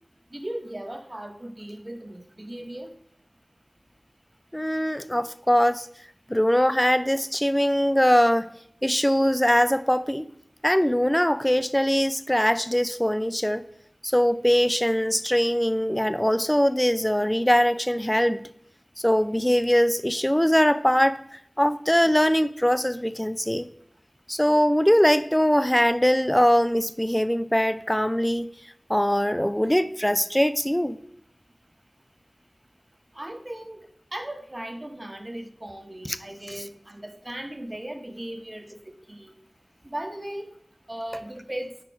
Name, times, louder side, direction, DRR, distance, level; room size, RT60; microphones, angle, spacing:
voice 1, 0.3-2.9 33.1-33.8 34.1-39.3 39.8-40.5 40.9-41.7, right 1 dB, 35° right, 5 dB, 1.0 m, -37 dB
voice 2, 4.5-5.9 6.3-8.5 8.8-10.3 10.6-13.6 14.0-18.5 19.0-23.7 24.3-28.5 28.9-31.0 36.0-36.2 36.5-36.6, equal, 10° left, 13 dB, 0.4 m, -22 dB
6.1 x 4.4 x 4.8 m, 0.67 s
wide cardioid pair, 50°, 0 cm